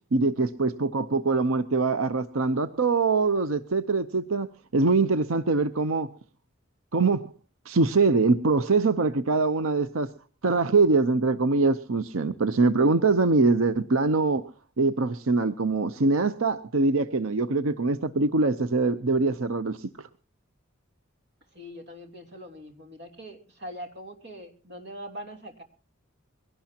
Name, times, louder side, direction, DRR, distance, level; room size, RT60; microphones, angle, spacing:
voice 1, 0.1-4.5 4.7-6.1 6.9-7.3 7.7-10.1 10.4-14.4 14.8-19.9, right 3 dB, 90° right, 12 dB, 0.8 m, -23 dB
voice 2, 21.5-25.6, equal, 55° right, 4 dB, 3.3 m, -42 dB
22.5 x 17.5 x 2.9 m, 0.37 s
head